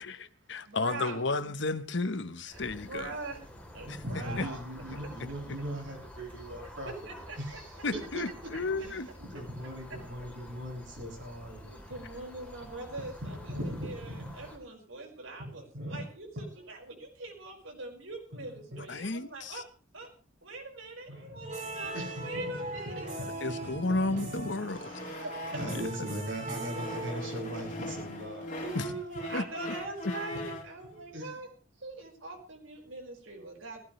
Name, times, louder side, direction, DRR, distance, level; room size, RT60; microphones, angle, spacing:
voice 1, 0.0-3.1 3.9-4.0 4.4-4.5 7.8-9.1 18.9-19.6 23.4-24.8 25.7-25.8 28.7-28.9 29.3-29.5, left 3 dB, 60° left, 1.2 m, -32 dB
voice 2, 0.7-1.2 2.5-4.6 5.0-5.1 6.9-7.6 11.6-19.7 19.9-20.1 20.4-23.1 23.4-23.5 25.2-25.3 28.6-31.5 31.8-33.8, right 3 dB, 85° right, 5.3 m, -43 dB
sound 1, 2.5-14.6, left 1 dB, 5° left, 3.5 m, -49 dB
voice 3, 3.8-6.9 7.4-8.2 8.8-11.7 12.6-14.5 15.4-16.1 16.4-16.5 18.4-18.8 21.1-28.5 28.8-28.9 30.9-31.3, equal, 65° right, 7.9 m, -40 dB
sound 2, 21.4-27.7, right 1 dB, 40° right, 7.4 m, -40 dB
sound 3, 21.8-26.0 26.4-30.8, left 1 dB, 40° left, 3.6 m, -42 dB
19.0 x 17.0 x 3.3 m
head